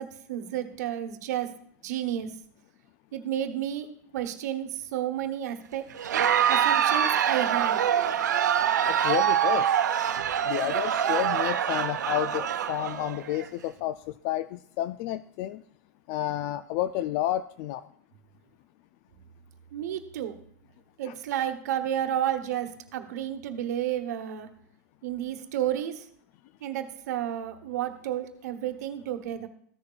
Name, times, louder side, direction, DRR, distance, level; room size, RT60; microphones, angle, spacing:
voice 1, 0.0-1.5 1.8-2.3 3.1-3.9 4.1-5.8 6.5-7.9 19.7-20.4 21.0-24.5 25.0-26.1 26.6-29.5, right 11 dB, 70° right, 8 dB, 1.1 m, -31 dB
Crowd, 5.9-13.5, right 9 dB, 85° right, 0.7 m, -25 dB
voice 2, 8.9-9.8 10.4-14.0 14.2-15.6 16.1-17.9 21.1-21.2, left 13 dB, 50° left, 14 dB, 0.3 m, -30 dB
14.5 x 6.6 x 2.4 m, 0.63 s
hypercardioid pair, 115°, 9 cm